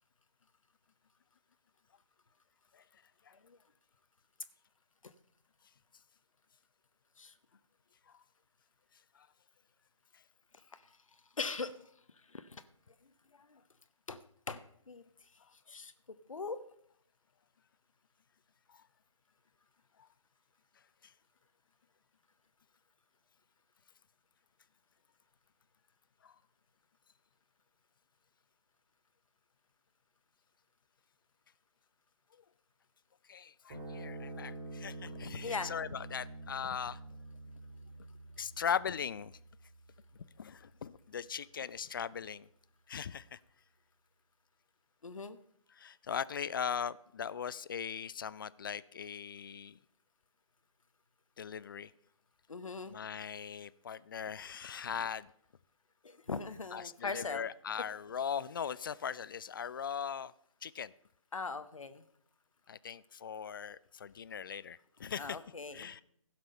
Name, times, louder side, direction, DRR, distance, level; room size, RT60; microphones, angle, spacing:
voice 1, 11.4-11.7 12.3-12.6 13.4-13.6 14.1-14.2 14.5-15.0 15.7-15.9 16.3-16.6 35.4-35.7 45.0-45.4 52.5-52.9 56.0-57.5 61.3-62.0 65.2-65.9, left 4 dB, 75° left, 11 dB, 0.8 m, -40 dB
voice 2, 33.3-37.0 38.4-39.3 40.4-42.5 42.9-43.4 45.8-49.8 51.4-51.9 52.9-55.3 56.7-60.3 60.6-60.9 62.7-65.4 65.7-66.0, left 7 dB, 40° left, 19 dB, 0.4 m, -39 dB
sound 1, 33.7-40.3, right 2 dB, 45° right, 4.0 m, -47 dB
16.0 x 6.0 x 5.3 m, 0.69 s
figure-of-eight pair, 140°, 17 cm